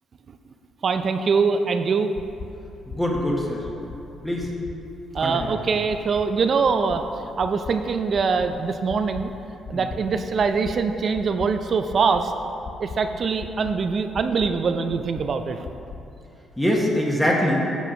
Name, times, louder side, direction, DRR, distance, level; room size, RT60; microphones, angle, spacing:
voice 1, 0.8-2.1 5.1-7.0 7.4-9.3 9.7-12.3 12.8-15.7, right 5 dB, 50° right, 8 dB, 0.4 m, -23 dB
sound 1, 2.2-2.5 2.9-3.2 3.6-4.0 4.4-4.7 5.1-5.5 5.9-6.2 6.6-7.0 7.4-7.7 8.1-8.5 8.9-9.2 9.6-10.0 10.4-10.7 11.1-11.5 11.9-12.2 12.6-13.0 13.4-13.7 14.1-14.5 14.9-15.2 15.6-16.0, left 5 dB, 45° left, 0.6 m, -37 dB
voice 2, 2.9-3.6 4.2-4.5 5.2-5.5 9.7-9.9 16.6-17.6, equal, 5° left, -3 dB, 1.2 m, -23 dB
8.4 x 5.5 x 5.1 m, 2.9 s
cardioid pair, 90°, 0 cm